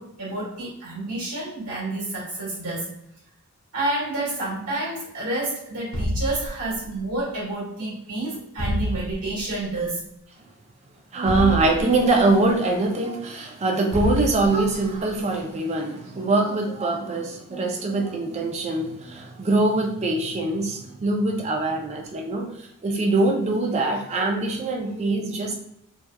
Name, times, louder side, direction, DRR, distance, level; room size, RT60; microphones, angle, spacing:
voice 1, 0.0-2.9 3.7-10.0, right 2 dB, 90° right, -5 dB, 1.3 m, -29 dB
sound 1, 5.9-7.1 8.6-9.5 11.3-12.3 13.9-14.9, left 1 dB, 65° left, 0.6 m, -28 dB
voice 2, 11.1-22.5 22.8-25.5, right 2 dB, 30° right, 2 dB, 0.4 m, -23 dB
2.8 x 2.2 x 2.2 m, 0.78 s
head